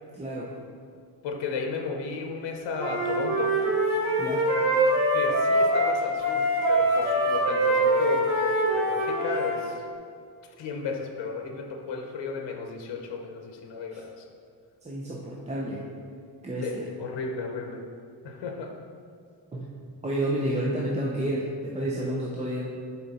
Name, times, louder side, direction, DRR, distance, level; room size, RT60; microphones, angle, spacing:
voice 1, 0.2-0.6 4.2-4.5 13.9-14.0 14.8-15.9 16.4-16.9 19.5-19.7 20.0-22.6, right 1 dB, 15° right, -4 dB, 0.6 m, -30 dB
voice 2, 1.2-3.6 5.1-9.8 10.6-14.2 16.6-17.8 18.2-18.7, left 4 dB, 85° left, 3 dB, 0.9 m, -34 dB
Wind instrument woodwind instrument, 2.8-9.6, right 1 dB, 50° right, 1.7 m, -24 dB
10.0 x 4.3 x 4.1 m, 2.3 s
wide cardioid pair, 160°, 42 cm